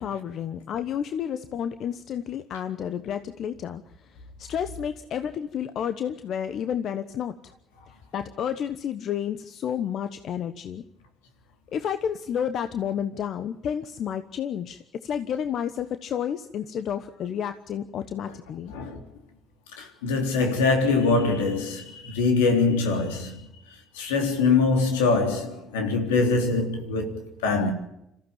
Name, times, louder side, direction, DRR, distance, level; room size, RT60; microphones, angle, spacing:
voice 1, 0.0-7.3 8.1-10.8 11.7-18.7, left 8 dB, 60° left, 1.1 m, -31 dB
voice 2, 19.8-23.4 23.9-27.7, left 4 dB, 85° left, 3.5 m, -23 dB
27.0 x 15.0 x 8.8 m
hypercardioid pair, 60°, 0 cm